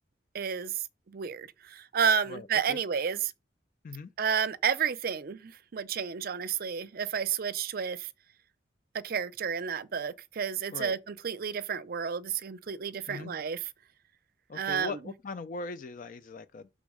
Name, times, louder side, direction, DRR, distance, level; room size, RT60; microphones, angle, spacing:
voice 1, 0.3-3.3 4.2-8.1 8.9-13.7 14.5-15.0, right 7 dB, 55° right, 0.5 m, -31 dB
voice 2, 2.3-2.8 3.8-4.1 10.7-11.0 13.1-13.3 14.5-16.7, left 3 dB, 50° left, 0.4 m, -40 dB
6.2 x 3.7 x 4.8 m
head